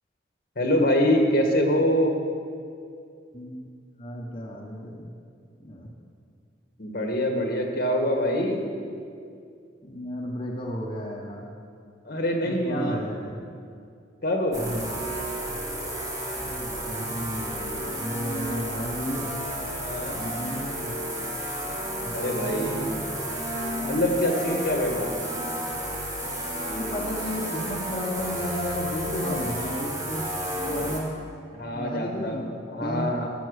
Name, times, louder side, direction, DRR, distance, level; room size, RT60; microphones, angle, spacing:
voice 1, 0.5-2.1 6.8-8.6 12.0-13.0 14.2-14.6 19.8-20.2 22.1-23.0 23.8-25.1 31.5-33.3, left 1 dB, 55° left, 2 dB, 1.6 m, -25 dB
voice 2, 3.3-3.7 4.0-5.1 5.6-5.9 9.8-11.5 12.4-13.4 14.6-15.2 16.4-19.4 20.2-21.0 22.0-23.2 26.7-30.3 30.7-31.2 31.7-32.5 32.8-33.2, equal, 30° left, -3 dB, 1.1 m, -33 dB
sound 1, 14.5-31.0, right 1 dB, 20° right, 2.0 m, -32 dB
13.0 x 8.1 x 6.4 m, 2.3 s
head